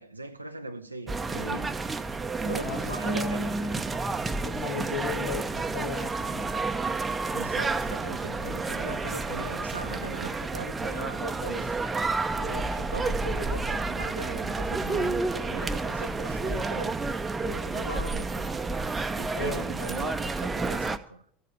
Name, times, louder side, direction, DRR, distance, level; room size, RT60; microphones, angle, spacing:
voice 1, 0.0-1.7 2.4-3.8 7.3-11.8 12.3-17.0 17.4-18.5 19.2-21.2, right 2 dB, 85° right, 0.6 m, -40 dB
sound 1, 1.1-21.0, right 3 dB, 15° right, 0.8 m, -30 dB
voice 2, 2.6-3.4 4.4-6.5 19.3-19.7, left 7 dB, 60° left, 1.5 m, -36 dB
14.0 x 6.8 x 8.8 m
figure-of-eight pair, 75°, 0 cm